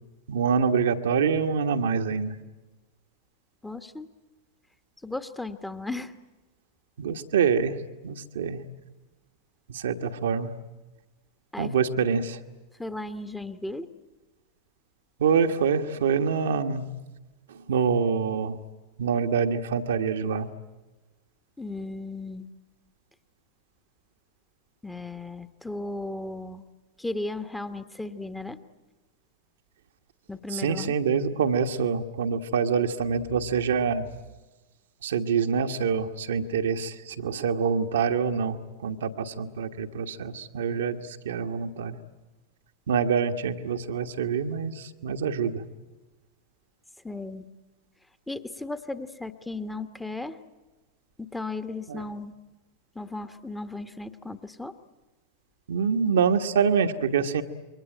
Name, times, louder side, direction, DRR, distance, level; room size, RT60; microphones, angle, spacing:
voice 1, 0.3-2.4 7.0-7.8 8.0-8.6 9.7-10.5 11.6-12.4 15.2-16.9 17.5-18.6 19.0-20.5 30.5-34.1 35.0-42.0 42.9-45.6 51.9-52.0 55.7-57.4, right 6 dB, 60° right, 5 dB, 1.4 m, -26 dB
voice 2, 3.6-4.1 5.0-6.1 11.5-11.7 12.8-13.9 21.6-22.5 24.8-26.6 27.0-28.6 30.3-30.9 47.0-47.5 48.3-50.4 51.2-52.3 52.9-54.7, left 2 dB, 5° left, 10 dB, 1.3 m, -35 dB
27.5 x 23.5 x 9.1 m, 1.2 s
figure-of-eight pair, 90°, 0 cm